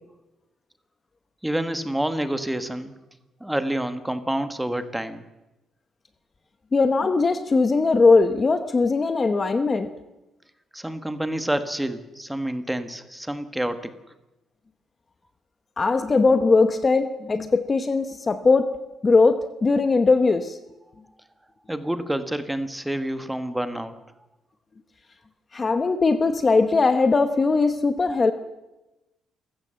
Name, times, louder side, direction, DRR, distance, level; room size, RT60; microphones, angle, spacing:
voice 1, 1.4-2.9 3.4-5.2 10.7-13.9 21.7-23.9, right 1 dB, 5° right, 10 dB, 1.3 m, -28 dB
voice 2, 6.7-9.9 15.8-18.7 19.0-20.6 25.5-28.3, left 3 dB, 20° left, 10 dB, 0.9 m, -20 dB
27.5 x 15.5 x 7.6 m, 1.0 s
cardioid pair, 175°, 0 cm